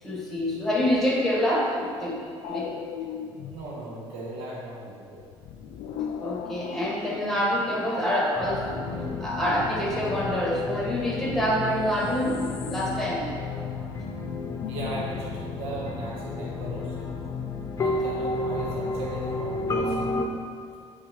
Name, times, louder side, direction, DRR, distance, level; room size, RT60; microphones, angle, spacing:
voice 1, 0.0-2.7 6.2-8.8 9.2-13.3, equal, 5° left, -3 dB, 1.4 m, -26 dB
sound 1, 2.4-3.7 5.2-7.4 11.5-11.6 11.8-13.2 13.4-13.5 13.8-13.9 14.2-15.2 17.4-17.7, left 8 dB, 75° left, 0.4 m, -38 dB
voice 2, 3.5-5.3 14.7-17.3 17.8-20.2, right 2 dB, 80° right, -4 dB, 1.2 m, -37 dB
sound 2, 8.4-20.3, left 3 dB, 30° left, 0.7 m, -32 dB
8.6 x 4.1 x 3.1 m, 2.3 s
cardioid pair, 120°, 10 cm